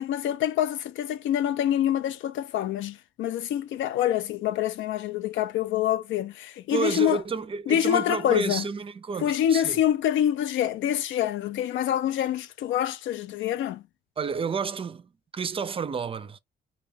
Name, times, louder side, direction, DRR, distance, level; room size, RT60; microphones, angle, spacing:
voice 1, 0.0-7.2 7.7-8.7 9.2-13.8, left 11 dB, 75° left, 0.4 m, -26 dB
voice 2, 6.7-9.8 14.2-16.4, right 5 dB, 25° right, 0.4 m, -30 dB
2.3 x 2.2 x 3.3 m
cardioid pair, 90°, 20 cm